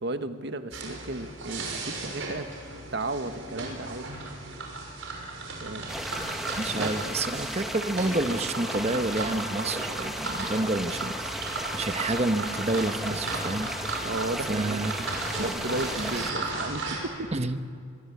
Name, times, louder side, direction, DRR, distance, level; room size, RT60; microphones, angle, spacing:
voice 1, 0.0-2.5 2.9-4.1 5.6-5.9 6.7-6.9 13.1-13.2 14.0-14.8 15.4-17.3, right 2 dB, 55° right, 8 dB, 1.4 m, -34 dB
sound 1, 0.7-17.0, right 3 dB, 75° right, 6.1 m, -36 dB
sound 2, 5.9-16.3, equal, ahead, 1.3 m, -35 dB
voice 2, 6.6-11.4 11.7-13.7 14.5-14.9 17.3-17.6, right 2 dB, 30° right, 9 dB, 1.0 m, -29 dB
23.5 x 23.0 x 8.4 m, 2.3 s
head